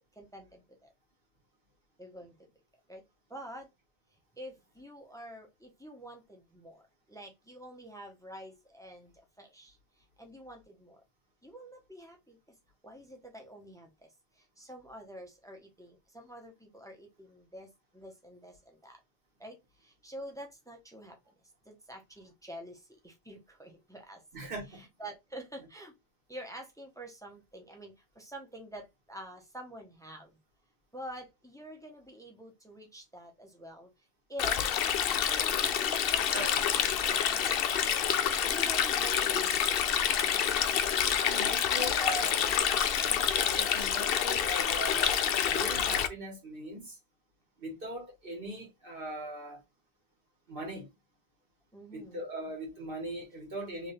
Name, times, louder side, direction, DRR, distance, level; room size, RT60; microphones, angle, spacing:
voice 1, 0.2-0.9 2.0-2.5 2.9-3.0 3.3-3.7 4.3-6.8 7.1-11.0 11.4-12.5 12.8-14.1 14.3-19.0 19.4-21.2 21.6-25.9 26.3-30.4 30.9-33.9 34.3-34.7 35.2-36.6 37.0-37.7 38.5-39.6 40.8-42.6 43.1-43.4 51.7-52.2, equal, 5° left, 0.9 m, -47 dB
voice 2, 24.3-24.8 36.3-36.6 41.2-42.4 43.3-45.2 45.4-47.0 47.6-49.6 50.5-50.9 51.9-53.9, right 1 dB, 60° right, 1.9 m, -39 dB
Stream, 34.4-46.1, left 8 dB, 70° left, 0.8 m, -28 dB
3.6 x 3.3 x 2.7 m
omnidirectional pair, 1.0 m